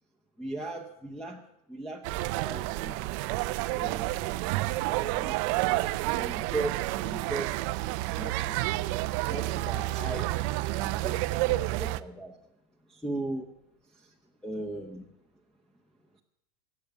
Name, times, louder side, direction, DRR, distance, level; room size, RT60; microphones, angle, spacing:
voice 1, 0.4-1.4 1.7-3.0 3.7-4.3 5.0-7.5 8.1-8.8 9.3-10.4 10.8-12.4 12.9-13.4 13.9-14.1 14.4-15.1, right 2 dB, ahead, 3 dB, 1.0 m, -38 dB
sound 1, 2.0-12.0, right 18 dB, 50° right, 0.6 m, -30 dB
17.5 x 7.1 x 8.2 m, 0.84 s
supercardioid pair, 135°, 20 cm